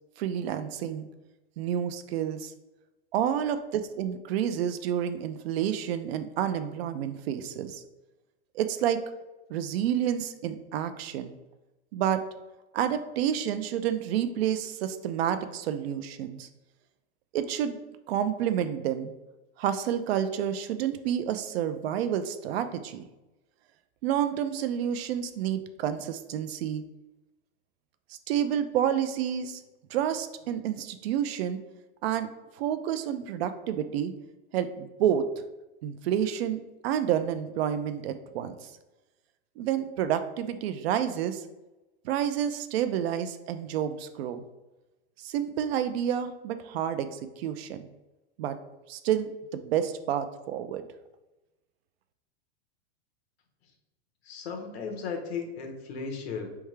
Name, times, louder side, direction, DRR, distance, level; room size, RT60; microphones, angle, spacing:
voice 1, 0.2-1.1 1.6-2.5 3.1-7.8 8.5-9.0 9.5-11.4 11.9-12.2 12.7-16.5 17.3-17.8 18.1-19.1 19.6-23.1 24.0-26.8 28.1-29.6 29.9-31.6 32.0-32.3 32.6-34.1 34.5-35.3 35.8-38.6 39.6-41.4 42.0-44.4 45.2-47.9 48.4-48.6 48.9-50.8, right 9 dB, 75° right, 10 dB, 0.5 m, -29 dB
voice 2, 54.2-56.5, left 5 dB, 85° left, 4 dB, 1.1 m, -35 dB
4.4 x 3.5 x 3.2 m, 1.0 s
supercardioid pair, 160°, 31 cm